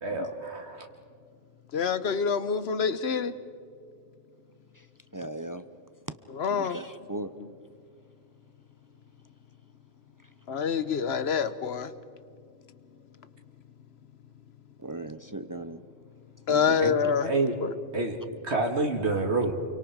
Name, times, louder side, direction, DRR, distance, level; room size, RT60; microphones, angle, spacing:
voice 1, 0.0-0.9 16.8-16.9 17.2-17.6 17.9-18.2 18.4-19.5, right 3 dB, 65° right, 2.0 m, -28 dB
voice 2, 1.7-3.3 6.3-6.8 10.5-11.9 16.5-17.3 17.6-17.7, left 6 dB, 65° left, 1.1 m, -26 dB
voice 3, 5.1-5.7 6.5-7.3 10.2-10.3 14.8-15.8 16.5-16.7, right 2 dB, 30° right, 0.4 m, -38 dB
29.0 x 23.5 x 4.7 m
omnidirectional pair, 1.2 m